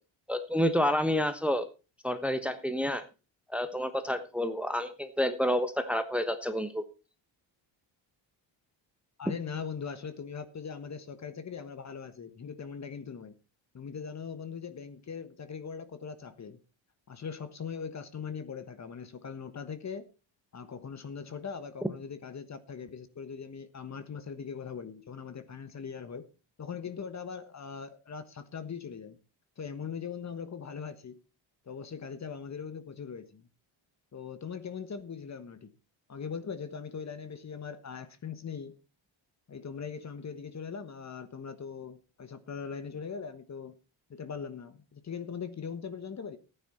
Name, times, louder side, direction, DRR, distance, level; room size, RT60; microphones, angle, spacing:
voice 1, 0.3-1.7 2.0-3.0 3.5-6.8, equal, 5° right, 1.1 m, -29 dB
voice 2, 9.2-13.3 13.7-16.6 17.1-20.1 20.5-26.2 26.6-29.2 29.6-31.2 31.7-33.4 34.1-35.7 36.1-38.8 39.5-43.7 44.1-46.4, left 6 dB, 35° left, 1.4 m, -40 dB
14.5 x 9.6 x 4.2 m
cardioid pair, 115°, 49 cm